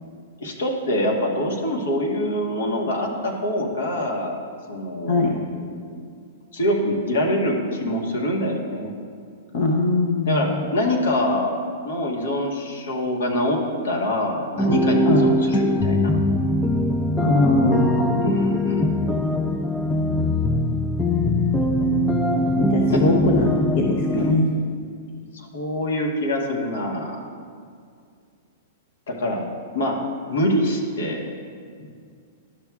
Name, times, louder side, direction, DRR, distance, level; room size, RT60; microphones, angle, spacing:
voice 1, 0.4-4.4 4.7-5.3 5.5-5.6 6.5-8.9 10.3-11.5 11.8-16.1 18.2-18.9 22.9-23.0 24.1-24.3 25.3-27.3 29.1-29.4 29.7-30.0 30.3-31.2, left 1 dB, 80° left, 0 dB, 1.3 m, -25 dB
voice 2, 9.5-10.6 15.1-15.2 17.2-18.4 22.6-24.5, left 2 dB, 55° left, 0 dB, 0.7 m, -21 dB
sound 1, 14.6-24.3, left 1 dB, 5° left, 0.4 m, -21 dB
12.0 x 6.0 x 2.4 m, 2.2 s
hypercardioid pair, 130°, 0 cm